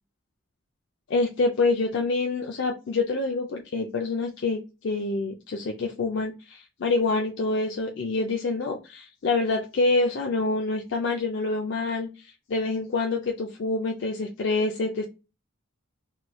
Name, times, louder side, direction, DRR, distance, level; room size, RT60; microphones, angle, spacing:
voice 1, 1.1-15.1, left 3 dB, 55° left, 1 dB, 0.4 m, -26 dB
3.0 x 2.2 x 3.0 m, 0.29 s
head